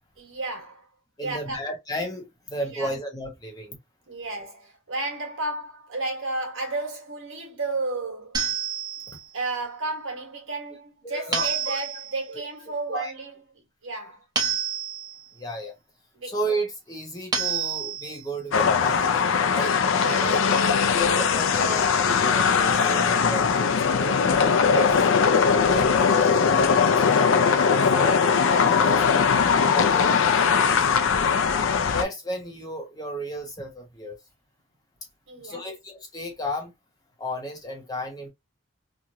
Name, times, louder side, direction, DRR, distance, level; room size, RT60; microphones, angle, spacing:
voice 1, 0.2-0.9 1.2-1.6 2.7-2.9 4.1-8.4 9.3-13.3 13.8-14.2 16.1-16.3 20.0-20.3 24.6-25.0 30.0-30.2 35.3-35.7, right 2 dB, 70° right, 1.3 m, -33 dB
voice 2, 1.2-3.8 9.1-9.2 11.0-11.8 12.3-12.4 12.9-13.1 15.3-15.7 16.2-19.8 20.2-20.5 20.8-24.2 24.7-29.3 29.7-31.0 31.9-34.2 35.4-36.7 37.2-38.3, equal, 20° left, 0.8 m, -33 dB
sound 1, 8.3-9.3 11.3-12.2 14.4-15.3 17.3-18.2, right 7 dB, 20° right, 0.8 m, -28 dB
sound 2, 18.5-32.0, left 6 dB, 70° left, 0.4 m, -20 dB
3.0 x 2.4 x 2.6 m
head